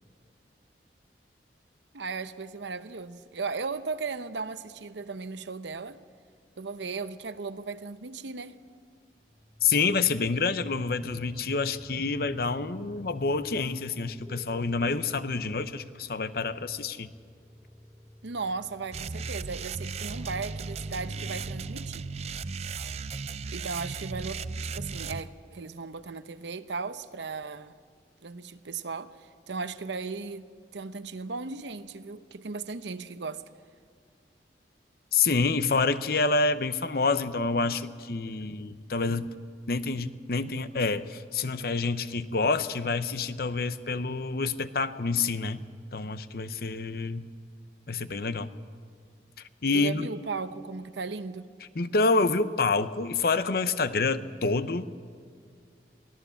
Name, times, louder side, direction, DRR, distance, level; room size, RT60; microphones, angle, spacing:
voice 1, 1.9-6.0 6.6-8.6 18.2-22.0 23.5-27.8 28.2-30.4 30.7-33.4 49.7-51.5, right 4 dB, 80° right, 0.8 m, -36 dB
sound 1, 9.2-23.8, left 1 dB, 5° right, 2.5 m, -49 dB
voice 2, 9.6-17.1 35.1-39.3 39.7-45.6 45.9-47.3 47.9-48.5 49.6-50.1 51.8-54.9, left 4 dB, 55° left, 0.8 m, -27 dB
sound 2, 18.9-25.2, right 4 dB, 35° right, 0.4 m, -36 dB
23.5 x 16.5 x 7.0 m
head